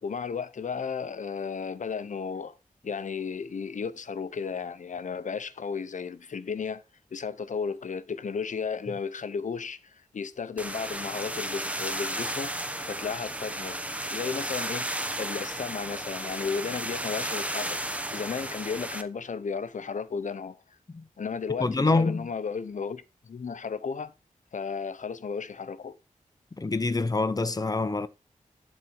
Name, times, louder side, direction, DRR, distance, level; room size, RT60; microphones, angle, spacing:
voice 1, 0.0-2.6 2.8-6.8 7.1-13.8 14.1-14.9 15.2-17.8 18.1-20.6 21.2-24.1 24.5-26.0, left 5 dB, 65° left, 0.7 m, -34 dB
sound 1, 10.6-19.0, right 1 dB, 10° right, 0.9 m, -33 dB
voice 2, 21.6-22.3 26.6-28.1, left 3 dB, 25° left, 0.7 m, -25 dB
11.0 x 4.1 x 4.7 m
wide cardioid pair, 100°, 14 cm